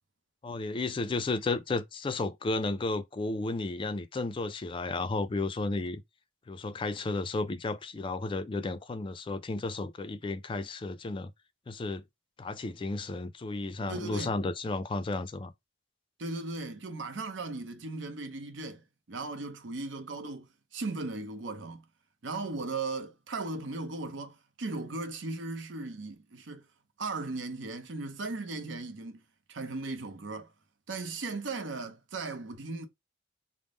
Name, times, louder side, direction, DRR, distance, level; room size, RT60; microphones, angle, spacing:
voice 1, 0.4-6.0 6.5-11.3 11.7-12.0 12.4-15.5, left 3 dB, 25° left, 0.3 m, -33 dB
voice 2, 13.9-14.3 16.2-18.8 19.1-20.5 20.7-21.8 22.2-26.6 27.0-29.2 29.5-30.5 30.9-32.9, right 3 dB, 70° right, 0.7 m, -37 dB
3.6 x 2.0 x 3.7 m
head